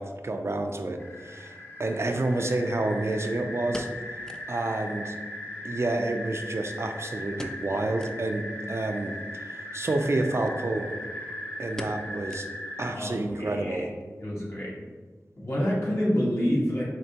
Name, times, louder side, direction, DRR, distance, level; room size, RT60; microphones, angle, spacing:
voice 1, 0.0-3.9 4.5-5.2 5.6-11.0 11.6-12.5 12.8-13.9, right 2 dB, 50° right, 5 dB, 0.4 m, -29 dB
sound 1, 1.0-12.9, left 1 dB, 35° left, 0.9 m, -39 dB
sound 2, 1.1-1.2 3.2-4.6 4.9-5.0 5.3-5.4 6.0-6.9 7.3-7.7 8.0-8.2 8.7-8.8 9.8-10.1 10.5-10.6 10.9-11.2 11.8-12.8 13.1-13.2 13.8-14.1 14.4-14.5, equal, 10° left, 0.3 m, -42 dB
voice 2, 12.9-13.8 14.2-14.7 15.4-16.8, equal, 55° left, -6 dB, 1.3 m, -27 dB
4.4 x 2.9 x 2.7 m, 1.4 s
wide cardioid pair, 40°, 6 cm